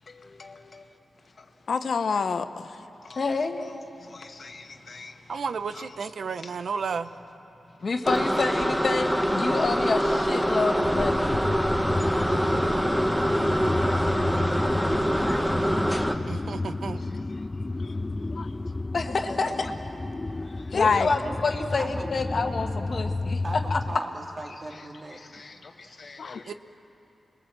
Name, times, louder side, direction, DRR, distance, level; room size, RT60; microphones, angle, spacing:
voice 1, 0.1-0.8 1.4-1.5 3.0-5.2 5.7-5.8 6.4-6.6 7.8-11.4 12.7-13.1 13.5-14.0 14.5-14.9 16.2-16.4 17.0-17.1 17.8-18.0 18.9-19.7 20.4-23.4 23.7-23.8 25.1-26.5, left 3 dB, 55° left, 5 dB, 1.5 m, -30 dB
voice 2, 1.7-2.7 18.3-18.5 20.7-21.1 26.2-26.5, left 5 dB, 70° left, 10 dB, 0.8 m, -26 dB
voice 3, 5.3-7.1 16.3-17.0 26.5-26.6, right 5 dB, 75° right, 11 dB, 0.7 m, -32 dB
sound 1, 8.0-16.1, equal, 5° right, 1.2 m, -25 dB
sound 2, 10.8-24.0, left 2 dB, 25° left, 0.4 m, -31 dB
voice 4, 12.2-15.6 21.1-21.4 21.8-22.1 23.0-25.5, right 2 dB, 35° right, 1 dB, 2.6 m, -41 dB
27.5 x 21.0 x 7.6 m, 3.0 s
wide cardioid pair, 90°, 0 cm